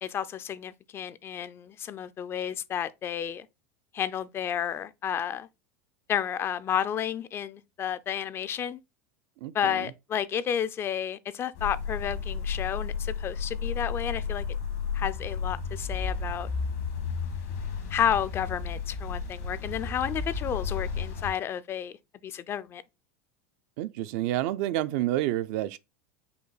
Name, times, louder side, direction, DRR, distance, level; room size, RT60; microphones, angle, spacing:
voice 1, 0.0-3.5 3.9-5.5 6.1-8.8 9.5-14.4 14.9-16.5 17.9-21.9 22.2-22.8, left 9 dB, 30° left, 0.3 m, -31 dB
voice 2, 9.4-9.9 23.8-25.8, right 14 dB, 65° right, 0.4 m, -29 dB
sound 1, 11.6-21.3, left 5 dB, 80° left, 1.5 m, -33 dB
5.5 x 2.2 x 3.9 m
supercardioid pair, 115°, 8 cm